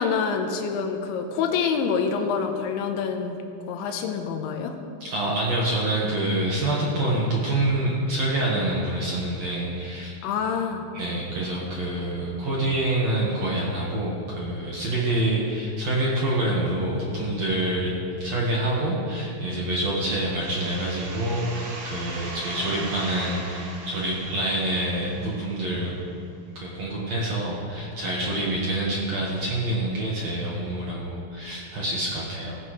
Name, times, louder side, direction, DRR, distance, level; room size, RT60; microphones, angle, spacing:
voice 1, 0.0-3.4 3.7-4.8 10.2-10.9, left 6 dB, 85° left, 5 dB, 3.2 m, -26 dB
voice 2, 5.0-10.2 10.9-25.9 26.5-32.6, right 1 dB, 65° right, -5 dB, 1.7 m, -26 dB
sound 1, 20.4-25.9, right 2 dB, 85° right, 4.9 m, -39 dB
16.5 x 14.5 x 3.2 m, 2.5 s
omnidirectional pair, 5.4 m